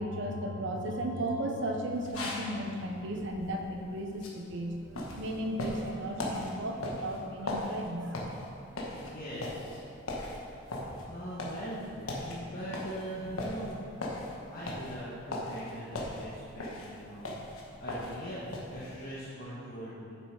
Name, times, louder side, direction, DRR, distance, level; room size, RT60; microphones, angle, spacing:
voice 1, 0.0-8.3, right 1 dB, 60° right, 2 dB, 0.9 m, -35 dB
sound 1, 1.9-19.1, left 1 dB, 90° left, 1.3 m, -40 dB
voice 2, 9.0-9.8 11.1-13.8 14.4-17.3 17.8-20.2, equal, 45° left, -9 dB, 1.3 m, -41 dB
7.8 x 6.7 x 4.8 m, 2.5 s
head